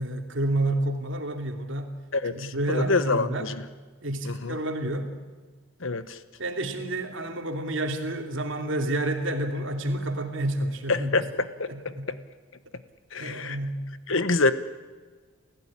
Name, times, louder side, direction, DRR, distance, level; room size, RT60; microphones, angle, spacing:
voice 1, 0.0-2.0 2.3-3.5 4.0-5.2 6.4-11.2 11.7-12.1 13.2-13.9, right 1 dB, 60° right, 5 dB, 2.9 m, -29 dB
voice 2, 2.1-3.6 4.2-4.6 5.8-6.2 10.9-11.9 13.1-13.6 14.1-14.5, left 3 dB, 65° left, 13 dB, 1.1 m, -26 dB
29.0 x 15.5 x 9.9 m, 1.4 s
head